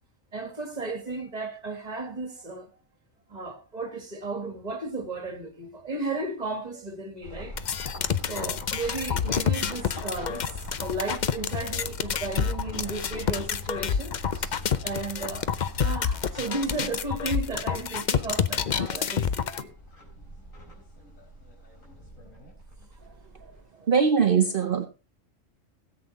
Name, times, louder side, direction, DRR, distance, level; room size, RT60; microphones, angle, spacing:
voice 1, 0.3-2.7 3.3-7.6 8.2-15.5 15.7-19.8 24.2-24.4, right 3 dB, 30° right, 1.9 m, -34 dB
sound 1, 7.2-23.6, left 2 dB, 80° left, 4.6 m, -42 dB
sound 2, 7.6-19.6, left 7 dB, 45° left, 0.6 m, -28 dB
voice 2, 23.9-24.9, right 6 dB, 50° right, 0.9 m, -21 dB
17.0 x 8.1 x 4.0 m
omnidirectional pair, 1.3 m